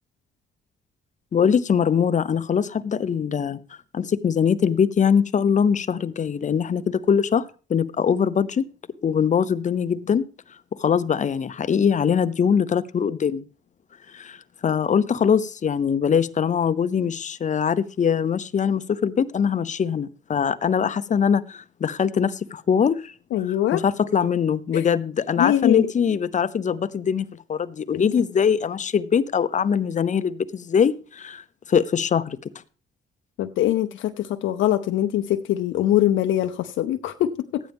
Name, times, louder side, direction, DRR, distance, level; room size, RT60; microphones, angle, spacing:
voice 1, 1.3-3.6 3.9-8.7 9.0-10.3 10.8-13.4 14.1-23.1 23.7-32.5, left 7 dB, 40° left, 0.7 m, -22 dB
voice 2, 23.3-23.8 24.7-24.8 25.4-25.9 27.9-28.0 33.4-37.6, left 12 dB, 75° left, 0.6 m, -23 dB
13.5 x 9.2 x 3.5 m
cardioid pair, 90°, 20 cm